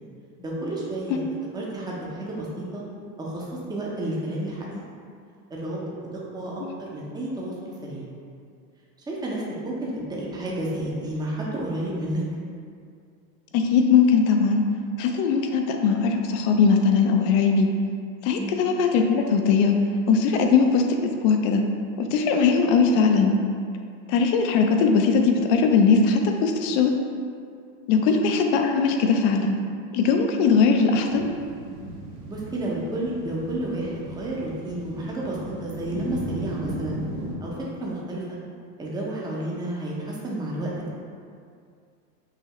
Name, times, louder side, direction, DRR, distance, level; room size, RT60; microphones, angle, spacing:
voice 1, 0.4-1.2 1.5-2.8 3.2-4.8 5.5-5.8 6.3-8.0 9.1-12.2 18.4-18.6 27.9-28.1 32.3-37.0 37.4-37.5 37.8-38.4 38.8-40.7, right 1 dB, 10° right, -5 dB, 0.7 m, -31 dB
voice 2, 13.5-14.6 15.0-17.7 18.2-19.8 20.1-21.6 22.0-23.3 24.1-26.9 27.9-29.6 29.9-31.2, left 5 dB, 55° left, 4 dB, 0.6 m, -20 dB
sound 1, 31.1-37.4, right 1 dB, 50° right, 0.9 m, -36 dB
5.7 x 2.7 x 3.0 m, 2.3 s
hypercardioid pair, 115°, 49 cm